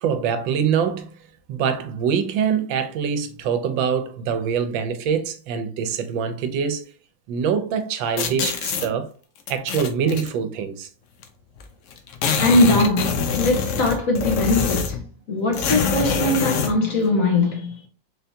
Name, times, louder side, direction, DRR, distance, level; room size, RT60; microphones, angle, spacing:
voice 1, 0.0-1.1 1.5-6.8 7.3-9.1 9.5-10.9, right 7 dB, 85° right, 1.4 m, -24 dB
sound 1, 8.2-8.9 9.5-10.3 11.2-11.3 11.6-11.7 11.9-15.1 15.5-16.8, left 6 dB, 85° left, 0.6 m, -24 dB
voice 2, 12.4-15.0 15.3-17.8, left 2 dB, 55° left, 1.1 m, -21 dB
4.0 x 3.3 x 2.7 m
omnidirectional pair, 2.1 m